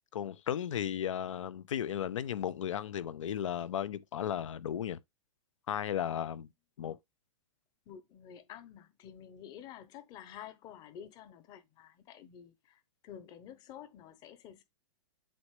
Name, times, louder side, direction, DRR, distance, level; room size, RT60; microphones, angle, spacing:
voice 1, 0.1-5.0 5.7-6.5 6.8-7.0, left 10 dB, 80° left, 0.8 m, -35 dB
voice 2, 7.9-14.6, left 9 dB, 25° left, 0.9 m, -50 dB
7.9 x 4.1 x 3.3 m
hypercardioid pair, 155°, 16 cm